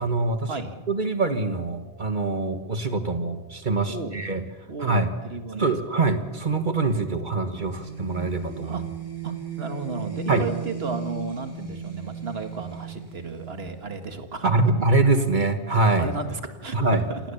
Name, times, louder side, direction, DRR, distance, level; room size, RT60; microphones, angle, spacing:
voice 1, 0.0-0.5 0.9-4.4 4.8-5.1 5.5-8.8 10.3-10.4 14.4-16.1 16.7-17.0, right 3 dB, 45° right, 8 dB, 1.6 m, -24 dB
voice 2, 3.9-4.2 4.7-5.7 8.6-8.8 9.2-14.5 16.0-17.2, right 4 dB, 70° right, 7 dB, 2.0 m, -33 dB
sound 1, 7.6-14.3, right 7 dB, 20° right, 4.9 m, -37 dB
28.0 x 17.0 x 7.1 m, 1.2 s
omnidirectional pair, 1.1 m